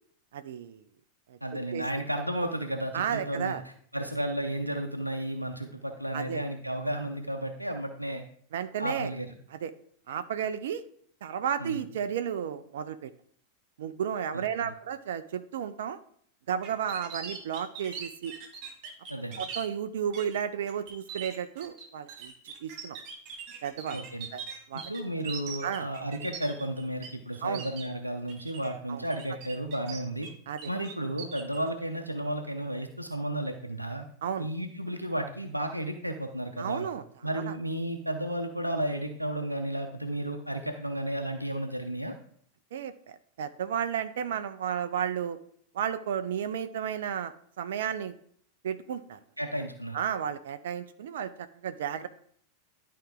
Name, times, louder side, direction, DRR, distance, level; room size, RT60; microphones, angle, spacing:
voice 1, 0.3-0.8 1.3-1.4 1.7-1.8 2.9-3.6 6.1-6.4 8.5-9.1 9.5-9.7 10.1-10.8 11.2-13.1 13.8-16.0 16.5-18.3 19.4-22.3 22.6-23.0 23.6-24.0 24.3-24.4 24.7-24.9 25.6-25.9 27.4-27.7 28.9-29.1 30.5-30.7 34.2-34.5 36.6-37.0 37.5-37.6 42.7-42.9 43.4-45.4 45.7-48.1 48.6-49.2 49.9-52.1, right 8 dB, 60° right, 11 dB, 0.4 m, -33 dB
voice 2, 1.4-3.5 3.9-8.2 8.8-9.3 11.6-11.8 14.3-14.7 19.1-19.4 23.9-24.3 24.7-30.3 30.7-34.0 34.4-36.9 37.2-42.1 49.4-50.0, right 1 dB, 90° right, 4 dB, 0.7 m, -33 dB
sound 1, 16.6-19.6 20.1-20.4 20.7-27.1 27.3-27.9 28.3-28.7 29.1-30.3 30.6-31.6, right 6 dB, 40° right, 2.0 m, -41 dB
11.5 x 4.6 x 3.7 m, 0.63 s
figure-of-eight pair, 90°, 0 cm